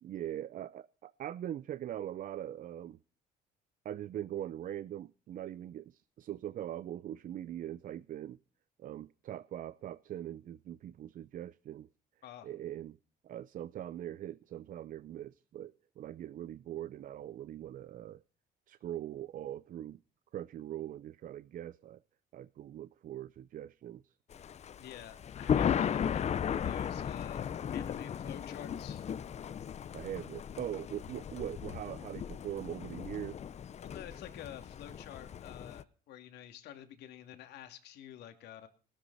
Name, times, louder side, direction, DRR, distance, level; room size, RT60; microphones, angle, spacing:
voice 1, 0.0-3.0 3.8-8.4 8.8-11.9 12.4-13.0 13.2-18.2 18.7-20.0 20.3-22.0 22.3-24.2 29.9-33.4, right 11 dB, 55° right, 0.6 m, -42 dB
Thunder, 24.3-35.8, left 8 dB, 40° left, 0.7 m, -36 dB
voice 2, 24.8-29.1 33.8-38.7, left 11 dB, 80° left, 2.6 m, -49 dB
20.0 x 13.0 x 4.2 m
cardioid pair, 110°, 17 cm